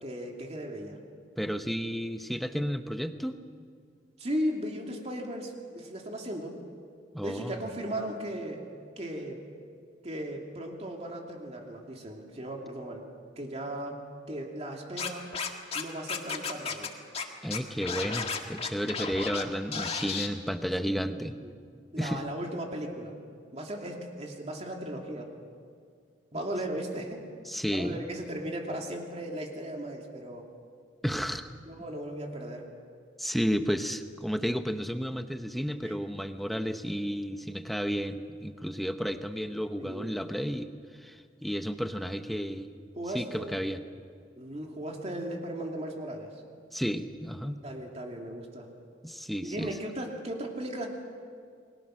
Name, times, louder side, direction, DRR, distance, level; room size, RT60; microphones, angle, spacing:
voice 1, 0.0-1.0 4.2-6.6 7.2-8.6 9.0-9.4 10.0-13.0 13.4-15.3 15.7-16.9 21.4-21.5 21.9-23.1 23.5-25.3 26.3-27.3 27.7-30.4 31.7-32.7 35.8-35.9 39.8-40.1 43.0-43.6 44.4-46.4 47.6-48.7 49.4-50.9, right 1 dB, 35° right, 1 dB, 2.7 m, -36 dB
voice 2, 1.4-3.4 7.1-7.6 17.4-21.4 22.0-22.2 27.5-28.1 31.0-31.5 33.2-40.7 41.0-42.7 43.1-43.8 46.7-47.6 49.0-49.7, equal, ahead, 8 dB, 0.9 m, -32 dB
Scratching (performance technique), 15.0-15.8 16.1-16.9 17.1-17.2 17.5-19.4 19.7-20.3, left 5 dB, 30° left, 1.8 m, -33 dB
29.0 x 21.5 x 6.4 m, 2.2 s
head